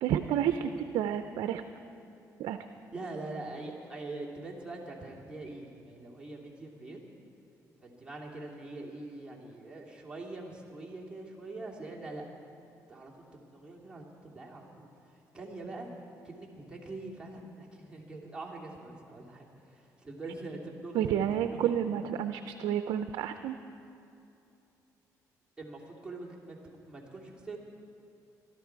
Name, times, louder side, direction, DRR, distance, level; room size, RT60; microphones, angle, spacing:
voice 1, 0.0-1.6 2.4-2.6 20.9-23.5, right 10 dB, 85° right, 9 dB, 0.5 m, -30 dB
voice 2, 2.9-7.0 7.8-12.3 12.9-13.1 13.5-14.9 15.3-15.9 16.2-22.0 25.6-26.6 26.8-27.6, right 2 dB, 10° right, -3 dB, 2.7 m, -43 dB
21.0 x 12.5 x 4.6 m, 2.7 s
cardioid pair, 85°, 7 cm